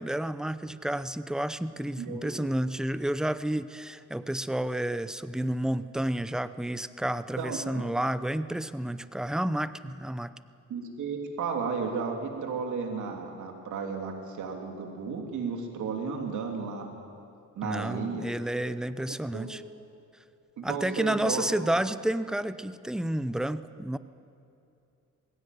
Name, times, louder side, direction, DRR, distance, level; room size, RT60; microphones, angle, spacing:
voice 1, 0.0-10.4 17.6-19.6 20.6-24.0, right 1 dB, ahead, 14 dB, 0.7 m, -30 dB
voice 2, 2.0-2.3 7.4-7.8 10.7-16.9 17.5-18.3 19.1-19.5 20.6-21.7, right 5 dB, 75° right, 2 dB, 3.1 m, -33 dB
20.0 x 16.0 x 9.4 m, 2.5 s
cardioid pair, 90°, 30 cm